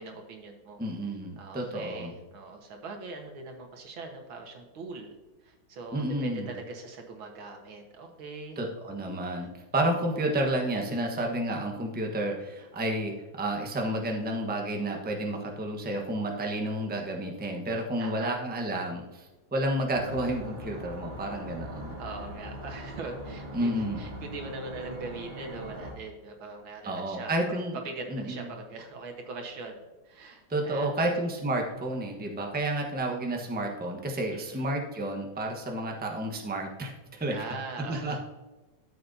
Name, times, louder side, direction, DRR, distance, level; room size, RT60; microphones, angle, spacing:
voice 1, 0.0-0.8 1.4-5.1 5.4-8.6 9.4-9.5 18.0-18.4 22.0-31.2 34.3-34.7 37.3-38.2, right 3 dB, 85° right, 3 dB, 2.2 m, -41 dB
voice 2, 0.8-2.1 5.9-6.5 8.6-22.0 23.5-24.0 26.8-27.8 28.1-28.5 30.5-37.4 37.8-38.2, right 1 dB, 5° right, 1 dB, 0.8 m, -31 dB
sound 1, 19.9-25.9, equal, 30° right, 2.0 m, -41 dB
13.0 x 7.4 x 2.8 m, 1.2 s
omnidirectional pair, 2.2 m